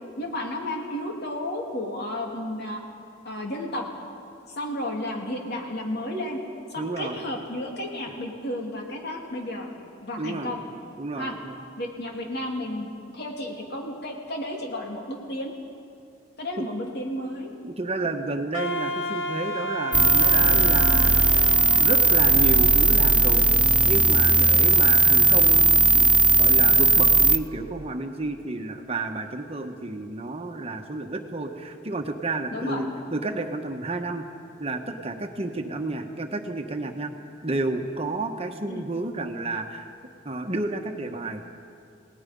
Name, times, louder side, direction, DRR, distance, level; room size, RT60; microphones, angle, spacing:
voice 1, 0.2-2.8 3.2-3.9 4.5-6.4 6.7-9.7 10.0-10.6 11.1-11.3 11.8-15.5 16.4-17.5 18.0-18.1 32.5-32.8 38.7-38.8, left 1 dB, 60° left, 0 dB, 3.1 m, -32 dB
voice 2, 6.8-7.2 10.2-10.6 11.0-11.6 16.6-16.7 17.6-21.3 21.8-23.5 23.9-26.1 26.4-34.2 34.6-37.1 37.4-39.9 40.2-41.5, right 2 dB, 35° right, 4 dB, 1.3 m, -31 dB
Wind instrument woodwind instrument, 18.5-23.6, equal, 75° left, 1.4 m, -33 dB
sound 1, 19.9-27.4, right 3 dB, 5° right, 0.6 m, -18 dB
30.0 x 18.5 x 5.4 m, 2.5 s
head